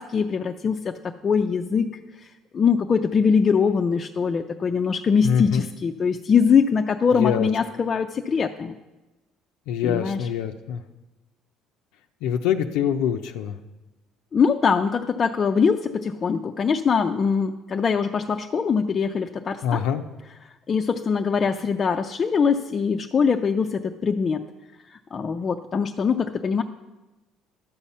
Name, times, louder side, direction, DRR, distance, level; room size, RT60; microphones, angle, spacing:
voice 1, 0.0-1.9 2.2-2.3 2.5-8.7 9.8-10.2 14.3-19.9 20.7-24.4 25.1-26.6, left 6 dB, 30° left, 4 dB, 0.4 m, -22 dB
voice 2, 5.2-5.6 7.1-7.5 9.7-10.8 12.2-13.5 19.6-20.0, left 9 dB, 90° left, 5 dB, 0.5 m, -24 dB
12.0 x 7.1 x 5.5 m, 1.1 s
cardioid pair, 125°, 0 cm